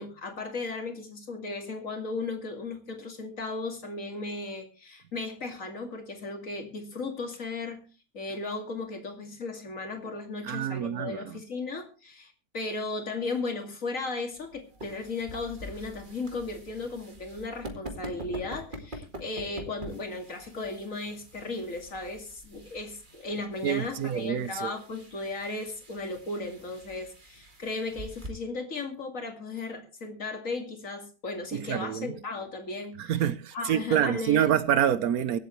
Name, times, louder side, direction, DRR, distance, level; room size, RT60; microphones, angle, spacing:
voice 1, 0.0-7.8 8.1-33.1 33.5-34.6, left 3 dB, 65° left, 2.8 m, -36 dB
voice 2, 10.4-11.4 23.6-24.7 31.5-32.1 33.0-35.4, right 10 dB, 85° right, 1.3 m, -27 dB
sound 1, 14.3-28.3, right 1 dB, 35° right, 2.0 m, -45 dB
24.0 x 8.2 x 3.2 m
omnidirectional pair, 1.5 m